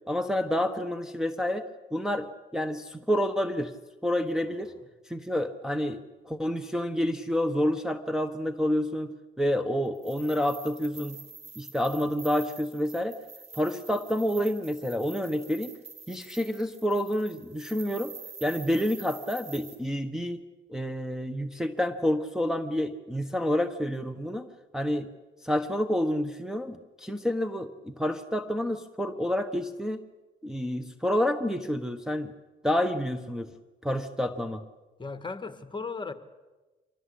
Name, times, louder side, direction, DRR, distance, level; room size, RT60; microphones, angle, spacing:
voice 1, 0.1-1.7 1.9-2.3 2.5-3.7 4.0-4.7 5.1-11.2 11.6-13.2 13.5-15.7 16.1-18.1 18.4-20.4 20.7-24.5 24.7-25.1 25.4-30.0 30.4-32.3 32.6-33.5 33.8-34.6, equal, 5° right, 1.2 m, -29 dB
sound 1, 9.9-19.8, right 5 dB, 35° right, 4.7 m, -47 dB
voice 2, 35.0-36.1, left 4 dB, 25° left, 1.7 m, -36 dB
24.5 x 17.5 x 8.6 m
cardioid pair, 90°, 20 cm